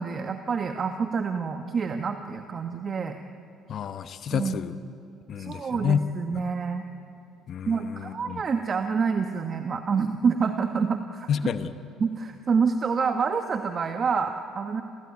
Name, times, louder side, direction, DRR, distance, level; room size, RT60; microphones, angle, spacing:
voice 1, 0.0-3.2 4.3-4.5 5.4-6.8 7.7-11.3 12.0-14.8, right 5 dB, 45° right, 6 dB, 1.3 m, -27 dB
voice 2, 3.7-4.8 5.3-6.0 6.3-6.5 7.5-8.4 11.3-11.7, left 8 dB, 55° left, 11 dB, 0.9 m, -29 dB
28.0 x 15.5 x 9.6 m, 2.6 s
supercardioid pair, 75°, 0 cm